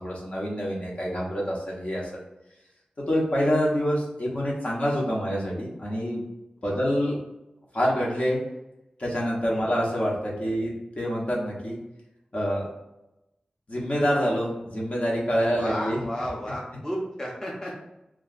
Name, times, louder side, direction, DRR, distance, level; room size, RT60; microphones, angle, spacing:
voice 1, 0.0-2.2 3.1-6.3 6.6-7.2 7.7-8.4 9.0-11.8 12.3-12.7 13.7-16.0, equal, 50° left, -4 dB, 1.0 m, -26 dB
voice 2, 15.5-17.8, equal, 20° left, -4 dB, 0.7 m, -33 dB
2.3 x 2.3 x 3.9 m, 0.92 s
cardioid pair, 40°, 3 cm